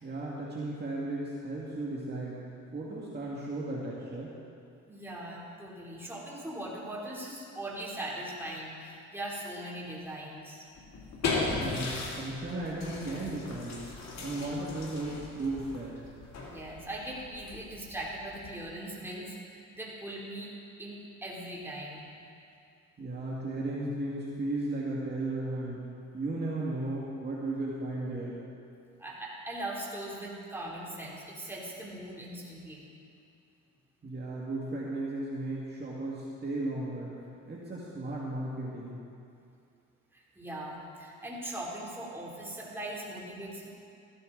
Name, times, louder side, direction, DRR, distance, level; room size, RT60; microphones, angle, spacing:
voice 1, 0.0-2.4 2.7-4.3 11.6-13.9 14.2-16.0 23.0-25.8 26.1-28.4 34.0-39.0, right 2 dB, 35° right, -6 dB, 2.0 m, -35 dB
voice 2, 4.9-10.6 16.5-20.5 20.8-22.1 29.0-32.9 40.1-43.7, right 1 dB, 5° right, -5 dB, 3.2 m, -40 dB
sound 1, 10.8-18.8, left 3 dB, 60° left, 2.2 m, -37 dB
14.5 x 13.0 x 3.9 m, 2.5 s
cardioid pair, 90°, 30 cm